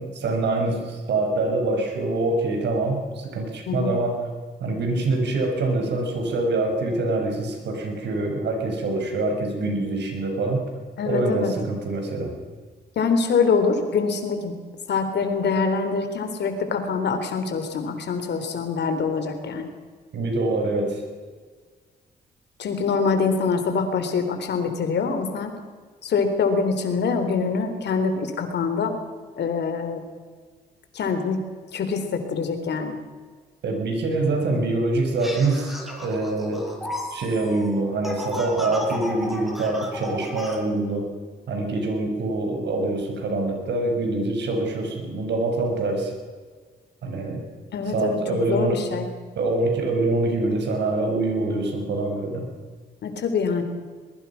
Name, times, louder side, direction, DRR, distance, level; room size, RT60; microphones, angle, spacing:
voice 1, 0.0-4.2 4.6-10.6 11.1-12.3 20.1-21.0 33.6-36.7 37.1-41.1 41.5-46.1 47.0-47.4 47.9-48.8 49.3-52.5, right 2 dB, 80° right, 3 dB, 6.0 m, -25 dB
voice 2, 11.0-11.5 13.0-14.5 14.9-19.7 22.6-25.5 26.0-28.9 29.4-30.0 30.9-31.4 31.7-33.0 47.7-48.2 48.4-49.1 53.0-53.6, left 5 dB, 75° left, 6 dB, 3.8 m, -24 dB
sound 1, 35.2-40.6, left 1 dB, ahead, 6.2 m, -34 dB
23.0 x 21.5 x 6.0 m, 1.6 s
cardioid pair, 65°, 18 cm